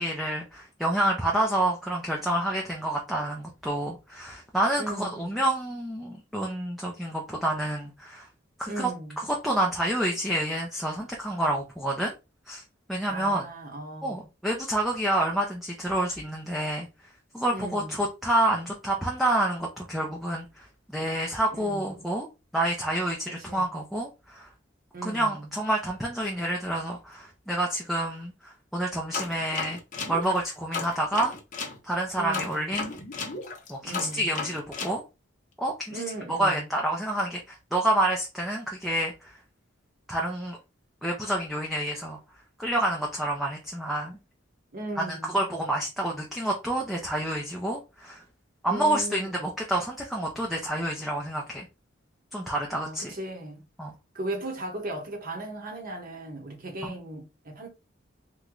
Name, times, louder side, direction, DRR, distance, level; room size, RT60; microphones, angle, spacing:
voice 1, 0.0-8.3 8.6-8.9 9.2-12.1 12.5-12.6 12.9-13.4 14.0-16.9 17.3-20.7 20.9-22.3 22.5-24.5 25.0-29.8 30.1-31.3 31.8-32.9 33.7-35.0 35.6-36.0 36.3-39.4 40.1-40.6 41.0-42.2 42.6-44.2 45.0-48.2 48.6-51.7 52.3-53.1 53.8-53.9 56.8-56.9, right 1 dB, ahead, 0.5 m, -28 dB
voice 2, 4.8-5.4 8.7-9.2 13.1-14.3 17.5-18.0 21.5-22.1 23.5-23.7 24.9-25.5 32.2-32.8 33.8-34.3 35.9-36.7 44.7-45.4 48.6-49.3 52.7-53.6 54.1-57.7, right 2 dB, 50° right, 1.0 m, -37 dB
sound 1, 29.1-31.8 32.3-35.0, left 4 dB, 40° left, 0.8 m, -34 dB
3.0 x 2.2 x 3.7 m
head